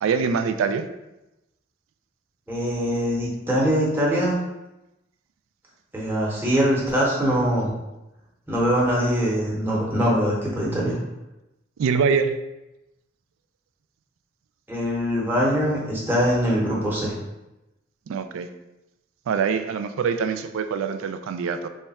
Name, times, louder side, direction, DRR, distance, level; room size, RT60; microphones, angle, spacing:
voice 1, 0.0-0.9 11.8-12.4 18.1-18.5 19.3-21.7, right 5 dB, 90° right, 10 dB, 0.3 m, -24 dB
voice 2, 2.5-4.4 5.9-7.7 8.5-11.0 14.7-17.1, equal, 10° right, -5 dB, 0.8 m, -22 dB
3.2 x 2.3 x 4.1 m, 0.96 s
head